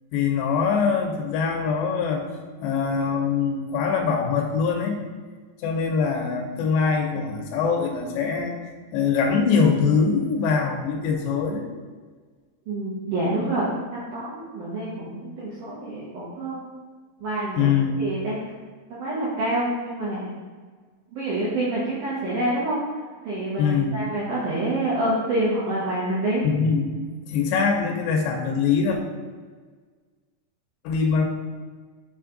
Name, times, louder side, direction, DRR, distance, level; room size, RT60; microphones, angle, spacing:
voice 1, 0.1-2.2 2.6-5.0 5.6-8.5 8.9-11.7 17.6-17.9 23.6-24.0 26.4-26.9 27.3-29.0 30.8-31.2, left 5 dB, 80° left, 2 dB, 2.8 m, -23 dB
voice 2, 12.7-16.6 17.2-18.4 18.9-20.3 21.1-22.8 23.2-26.4, right 1 dB, 70° right, -8 dB, 2.0 m, -27 dB
9.1 x 3.2 x 3.8 m, 1.5 s
omnidirectional pair, 5.0 m